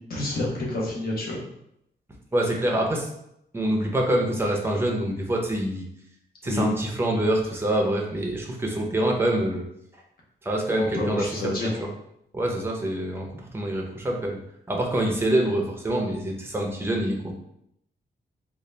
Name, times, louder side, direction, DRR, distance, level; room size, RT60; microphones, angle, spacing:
voice 1, 0.1-1.5 6.4-6.6 10.7-11.9, left 1 dB, 55° left, -3 dB, 1.1 m, -29 dB
voice 2, 2.3-3.1 3.5-5.8 6.4-9.6 10.4-11.3 11.6-11.9 12.3-14.4 14.7-17.3, right 1 dB, 15° right, 0 dB, 0.6 m, -25 dB
3.8 x 2.4 x 3.2 m, 0.76 s
wide cardioid pair, 165°, 18 cm